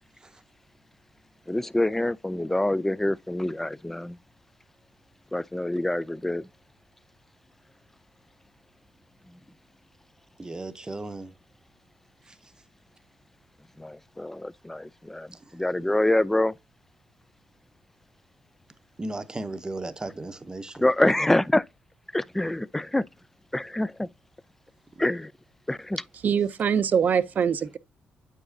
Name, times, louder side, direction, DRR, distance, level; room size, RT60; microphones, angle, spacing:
voice 1, 1.5-4.2 5.3-6.5 13.8-16.5 20.8-21.6 22.1-23.1 23.5-24.1 25.0-25.3 25.7-26.0, left 1 dB, 10° left, 0.3 m, -26 dB
voice 2, 10.4-11.3 12.2-12.5 15.3-15.6 19.0-20.8 25.0-25.1 26.3-26.4, right 2 dB, 20° right, 0.7 m, -36 dB
voice 3, 26.2-27.8, right 7 dB, 55° right, 0.5 m, -23 dB
8.7 x 4.9 x 2.7 m
cardioid pair, 75°, 3 cm